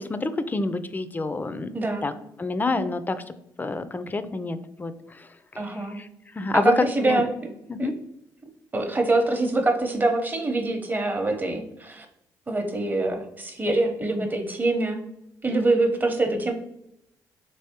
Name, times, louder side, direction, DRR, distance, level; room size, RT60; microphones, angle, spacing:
voice 1, 0.0-1.7 2.0-2.1 2.4-3.2 3.6-5.3 6.0-6.1 6.4-7.2 7.7-7.9 14.2-14.3, left 3 dB, 20° left, 11 dB, 0.3 m, -27 dB
voice 2, 1.7-2.1 5.6-6.0 6.5-7.3 7.8-7.9 8.7-12.1 12.5-15.0 15.4-16.5, right 2 dB, 25° right, 4 dB, 0.7 m, -24 dB
3.3 x 3.1 x 2.8 m, 0.80 s
supercardioid pair, 60°, 8 cm